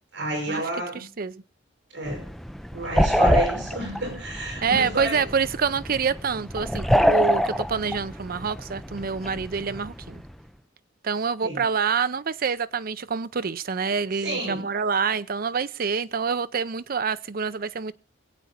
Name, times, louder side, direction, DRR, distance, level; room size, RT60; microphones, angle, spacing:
voice 1, 0.1-1.0 1.9-2.3 2.7-5.3 11.4-11.6 14.2-14.7, right 1 dB, 70° right, 6.9 m, -30 dB
voice 2, 0.9-1.4 4.6-10.2 11.0-17.9, right 5 dB, 50° right, 0.6 m, -27 dB
sound 1, 2.0-10.4, equal, ahead, 0.5 m, -26 dB
21.5 x 8.4 x 4.3 m
head